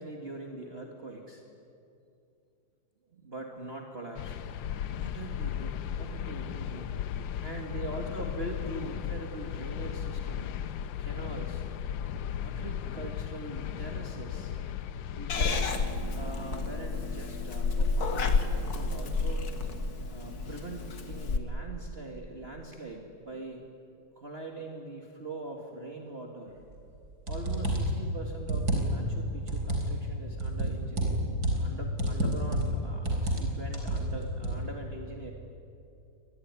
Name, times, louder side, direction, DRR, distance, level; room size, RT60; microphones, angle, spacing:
voice 1, 0.0-1.4 3.1-4.4 4.9-7.0 7.4-10.5 11.0-11.6 12.4-14.6 15.2-15.9 16.2-19.4 20.1-23.6 24.2-26.6 27.3-35.3, right 2 dB, 35° right, 1 dB, 2.2 m, -42 dB
sound 1, 4.2-16.7, left 9 dB, 85° left, 1.5 m, -36 dB
Purr / Meow, 15.3-21.4, left 4 dB, 55° left, 2.0 m, -30 dB
sound 2, 26.8-26.9 27.3-28.0 28.4-29.1 29.5-29.9 30.4-31.7 32.0-32.8 33.1-33.5 33.7-34.6, right 1 dB, 60° right, 4.7 m, -29 dB
25.0 x 20.5 x 9.6 m, 2.6 s
omnidirectional pair, 2.0 m